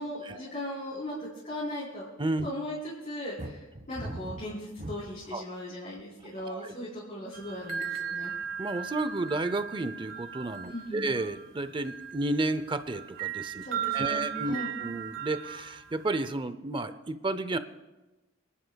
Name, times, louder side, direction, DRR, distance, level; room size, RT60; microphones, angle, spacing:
voice 1, 0.0-2.1 2.4-8.3 10.7-11.1 13.6-14.7, left 1 dB, 40° left, -7 dB, 3.8 m, -38 dB
sound 1, 3.4-5.3 6.0-6.4, right 1 dB, 40° right, 1.4 m, -40 dB
voice 2, 6.4-6.7 8.6-13.6 13.9-17.6, right 2 dB, 25° right, 12 dB, 0.6 m, -32 dB
sound 2, 7.3-16.3, right 9 dB, 75° right, 1.4 m, -37 dB
27.5 x 11.5 x 2.3 m, 1.1 s
head